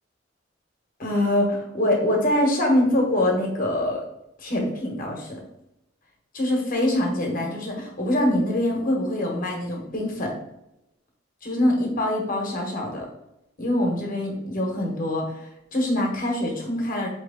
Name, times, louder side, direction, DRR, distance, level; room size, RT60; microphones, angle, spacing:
voice 1, 1.0-4.0 4.4-5.4 6.3-10.3 11.4-13.1 13.6-15.4 15.7-17.1, left 1 dB, 45° left, 0 dB, 1.1 m, -24 dB
4.5 x 3.1 x 3.6 m, 0.85 s
head